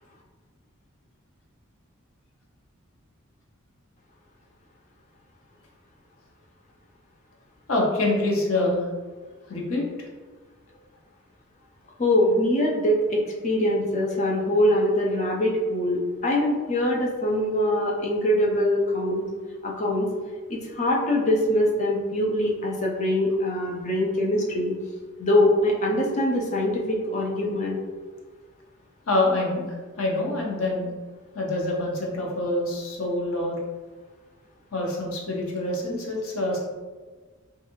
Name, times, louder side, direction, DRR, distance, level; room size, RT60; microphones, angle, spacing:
voice 1, 7.7-8.9 9.5-10.1 29.1-30.9 31.3-33.6 34.7-36.6, left 2 dB, 85° left, -1 dB, 0.7 m, -26 dB
voice 2, 12.0-19.2 19.6-20.1 20.5-24.7 25.2-27.8, left 1 dB, 35° left, -1 dB, 0.4 m, -23 dB
2.5 x 2.4 x 2.9 m, 1.4 s
head